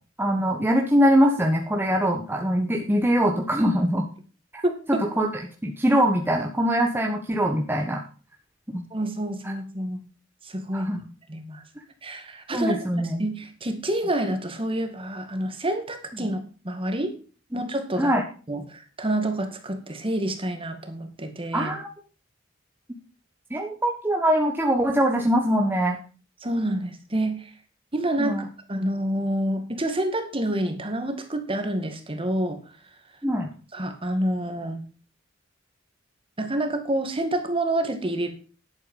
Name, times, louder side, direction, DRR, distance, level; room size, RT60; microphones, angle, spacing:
voice 1, 0.2-4.1 4.9-5.3 5.6-8.0 8.7-8.8 9.4-9.5 10.7-11.0 12.5-13.3 18.0-18.2 21.5-21.9 23.5-26.0 28.2-28.4 33.2-33.5, equal, 10° right, 0 dB, 1.4 m, -22 dB
voice 2, 4.6-5.1 8.9-10.0 10.4-11.6 12.0-12.9 13.2-17.1 17.5-18.1 18.5-21.7 26.4-27.5 27.9-28.4 28.7-32.6 33.7-34.9 36.4-38.3, right 1 dB, 30° right, 7 dB, 2.0 m, -28 dB
11.0 x 8.3 x 5.5 m, 0.37 s
head